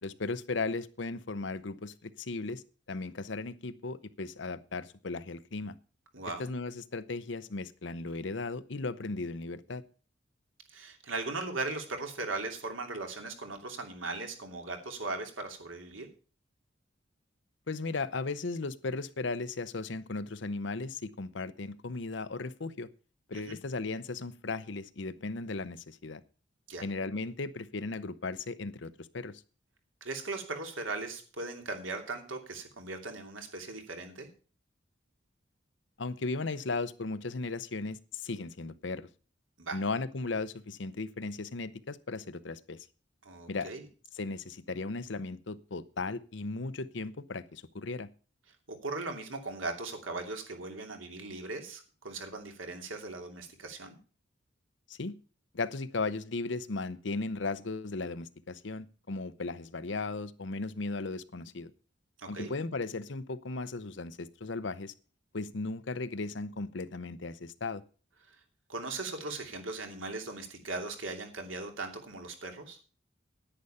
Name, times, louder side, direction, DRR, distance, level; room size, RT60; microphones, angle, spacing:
voice 1, 0.0-2.6 2.9-5.7 6.4-9.8 17.7-22.9 23.3-26.2 26.8-29.4 36.0-39.1 39.7-42.9 43.5-43.7 44.1-48.1 54.9-55.2 55.5-61.7 62.3-64.9 65.3-67.8, left 3 dB, 70° left, 0.8 m, -36 dB
voice 2, 6.1-6.5 10.7-16.1 23.3-23.6 26.7-26.8 30.0-34.3 39.6-39.8 43.2-43.8 48.7-54.0 62.2-62.5 68.3-68.4 68.7-72.8, right 3 dB, 90° right, 2.9 m, -38 dB
10.0 x 9.8 x 5.6 m
head